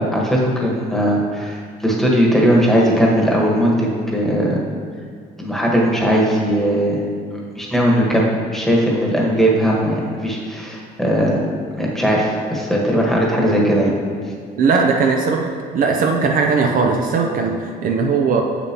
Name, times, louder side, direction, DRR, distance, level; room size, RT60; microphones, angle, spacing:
voice 1, 0.0-4.6 5.4-7.0 7.5-11.4 11.8-13.9, equal, ahead, -3 dB, 1.3 m, -18 dB
voice 2, 14.6-18.4, right 4 dB, 55° right, 2 dB, 0.6 m, -18 dB
6.9 x 6.8 x 2.9 m, 2.2 s
cardioid pair, 110°, 17 cm